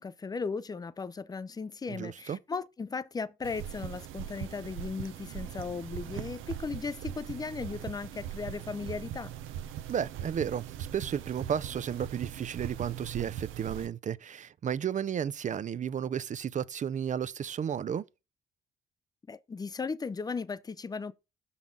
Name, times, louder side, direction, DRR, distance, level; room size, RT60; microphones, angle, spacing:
voice 1, 0.0-9.3 19.3-21.1, left 4 dB, 20° left, 0.4 m, -36 dB
voice 2, 1.9-2.4 9.9-10.6 10.9-18.0, right 8 dB, 40° right, 0.4 m, -33 dB
sound 1, 3.4-13.9, right 10 dB, 85° right, 0.7 m, -40 dB
6.0 x 5.5 x 3.8 m
cardioid pair, 90°, 20 cm